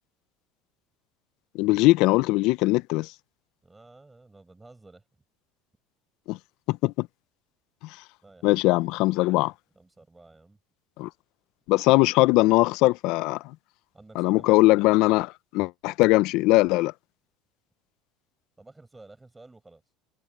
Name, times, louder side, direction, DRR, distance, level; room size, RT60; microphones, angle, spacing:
voice 1, 1.5-3.1 6.3-6.4 6.7-7.1 8.4-9.5 11.0-11.1 11.7-13.4 14.2-16.9, left 20 dB, 65° left, 0.5 m, -21 dB
voice 2, 3.6-5.1 8.2-9.3 9.7-10.6 13.9-14.7 18.6-19.8, right 2 dB, 10° right, 6.0 m, -52 dB
supercardioid pair, 130°, 0 cm